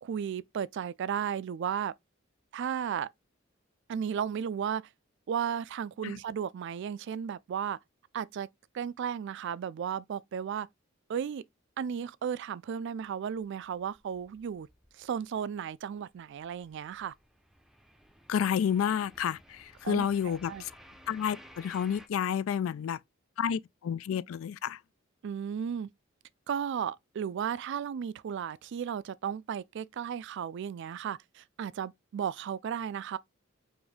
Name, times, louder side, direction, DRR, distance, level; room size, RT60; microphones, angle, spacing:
voice 1, 0.0-1.9 2.5-3.1 3.9-4.8 5.3-7.8 8.1-8.5 8.7-10.7 11.1-11.4 11.8-14.7 15.0-17.1 19.8-20.6 25.2-25.9 26.5-33.2, right 8 dB, 60° right, 0.3 m, -34 dB
sound 1, 13.0-15.4 15.6-22.1, equal, ahead, 0.6 m, -56 dB
voice 2, 18.3-20.7 21.1-23.0 23.4-24.8, left 8 dB, 80° left, 0.3 m, -30 dB
5.0 x 2.6 x 3.5 m
head